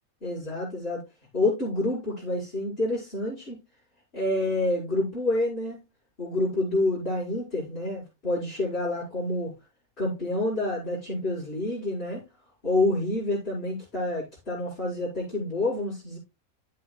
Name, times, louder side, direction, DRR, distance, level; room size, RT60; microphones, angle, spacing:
voice 1, 0.2-1.0 1.3-3.6 4.1-5.8 6.2-9.5 10.0-12.2 12.6-16.2, left 2 dB, 45° left, 5.3 m, -28 dB
11.0 x 8.3 x 2.3 m
omnidirectional pair, 1.5 m